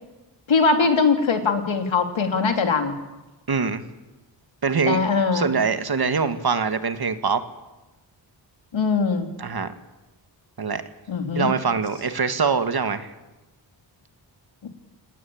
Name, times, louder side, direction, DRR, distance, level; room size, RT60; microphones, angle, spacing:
voice 1, 0.5-3.0 4.9-5.5 8.7-9.3 11.1-11.5, left 4 dB, 80° left, 6 dB, 3.0 m, -21 dB
voice 2, 3.5-3.8 4.6-5.0 5.3-7.4 9.4-9.7 10.6-10.8 11.4-13.1, right 5 dB, 55° right, 10 dB, 2.0 m, -23 dB
28.0 x 19.0 x 8.7 m, 1.1 s
wide cardioid pair, 110°, 46 cm